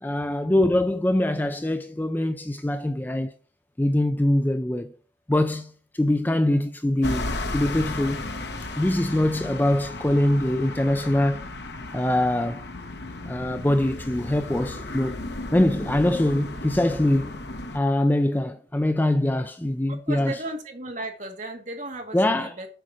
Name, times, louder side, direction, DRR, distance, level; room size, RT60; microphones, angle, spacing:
voice 1, 0.0-3.3 3.8-5.0 5.3-8.2 8.8-11.5 11.9-12.6 13.2-15.1 15.5-17.3 17.7-20.4 22.1-22.6, left 1 dB, 10° left, 0.4 m, -23 dB
sound 1, 7.0-17.8, left 2 dB, 70° left, 1.1 m, -34 dB
voice 2, 19.9-22.7, right 2 dB, 40° right, 2.0 m, -35 dB
8.0 x 5.0 x 6.3 m
head